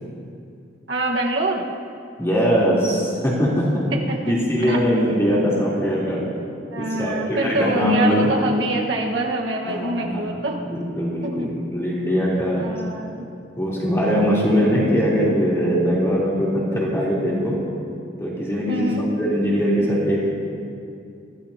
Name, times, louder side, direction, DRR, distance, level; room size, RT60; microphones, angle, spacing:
voice 1, 0.9-1.7 3.9-4.3 4.7-4.8 6.7-10.7 11.2-11.5 12.6-13.2 18.7-19.1, right 2 dB, 80° right, 0 dB, 1.5 m, -25 dB
voice 2, 2.2-3.8 4.3-6.2 6.8-8.3 9.7-10.4 10.6-12.7 13.6-17.6 18.2-18.9 19.2-20.2, equal, 15° left, -7 dB, 3.6 m, -21 dB
23.5 x 15.5 x 2.9 m, 2.4 s
head